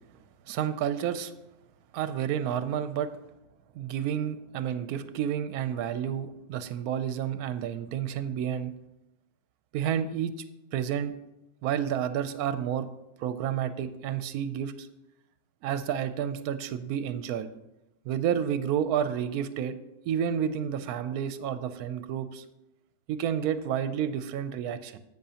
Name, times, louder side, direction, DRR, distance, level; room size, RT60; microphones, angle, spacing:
voice 1, 0.5-1.3 1.9-3.1 3.7-8.7 9.7-10.3 10.7-11.1 11.6-12.9 13.2-14.9 15.6-17.5 18.1-19.7 20.1-22.4 23.1-25.0, right 9 dB, 80° right, 12 dB, 1.1 m, -30 dB
10.5 x 8.1 x 2.9 m, 0.91 s
omnidirectional pair, 1.6 m